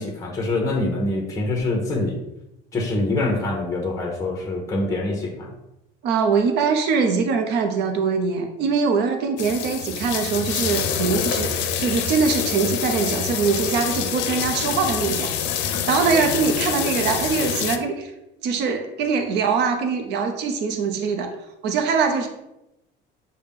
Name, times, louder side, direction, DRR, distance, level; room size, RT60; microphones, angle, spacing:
voice 1, 0.0-2.2 2.7-5.5, left 2 dB, 15° left, 0 dB, 0.8 m, -25 dB
voice 2, 6.0-15.3 15.9-18.1 18.4-21.3 21.6-22.3, right 5 dB, 65° right, 5 dB, 0.7 m, -22 dB
sound 1, 9.4-17.8, left 8 dB, 75° left, 0.5 m, -26 dB
6.6 x 2.2 x 3.6 m, 0.89 s
cardioid pair, 145°, 19 cm